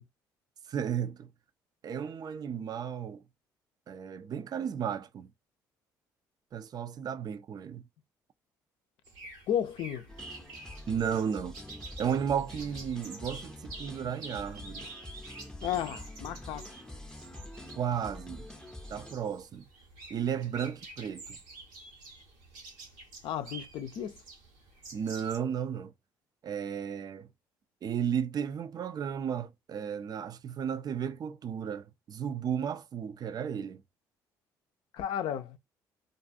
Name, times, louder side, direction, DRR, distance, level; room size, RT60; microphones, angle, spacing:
voice 1, 0.7-1.3 1.8-3.2 3.9-5.3 6.5-7.9 10.9-11.5 12.0-14.9 17.8-18.5 18.9-19.6 20.1-21.4 24.9-25.9 26.4-27.3 27.8-33.8, right 8 dB, 45° right, 0.4 m, -34 dB
sound 1, 9.0-25.4, right 3 dB, 90° right, 1.1 m, -49 dB
voice 2, 9.5-10.1 15.6-16.7 23.2-24.2 34.9-35.6, left 10 dB, 65° left, 0.4 m, -33 dB
sound 2, 10.1-19.2, left 1 dB, 10° left, 0.6 m, -46 dB
2.5 x 2.3 x 2.5 m
hypercardioid pair, 60°, 9 cm